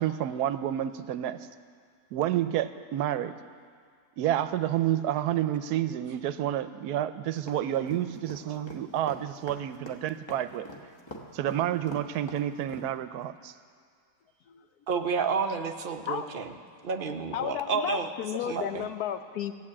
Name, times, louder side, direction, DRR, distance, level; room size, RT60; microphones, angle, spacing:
voice 1, 0.0-1.4 2.1-3.3 4.2-10.7 11.3-13.5, right 11 dB, 80° right, 12 dB, 1.1 m, -29 dB
sound 1, 7.5-12.9, equal, 20° left, 1.1 m, -43 dB
voice 2, 14.9-16.5 16.8-18.1 18.5-18.9, right 5 dB, 45° right, 5 dB, 0.7 m, -30 dB
voice 3, 17.3-19.5, left 9 dB, 75° left, 9 dB, 1.2 m, -33 dB
15.5 x 8.3 x 8.6 m, 2.1 s
omnidirectional pair, 1.7 m